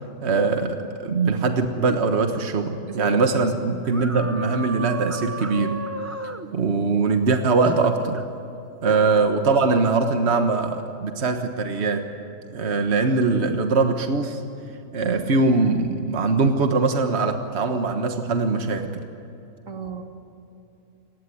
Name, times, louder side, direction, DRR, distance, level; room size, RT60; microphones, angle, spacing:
voice 1, 0.2-5.8 6.5-8.2 8.8-12.1 12.5-14.4 14.9-19.0, right 4 dB, 55° right, 6 dB, 1.6 m, -22 dB
voice 2, 2.9-3.8 8.9-9.1 19.7-20.0, right 7 dB, 90° right, 4 dB, 2.4 m, -34 dB
sound 1, 3.9-6.5 7.6-8.3 8.9-9.1, right 1 dB, 15° right, 0.7 m, -33 dB
29.0 x 19.0 x 9.8 m, 2.9 s
omnidirectional pair, 1.3 m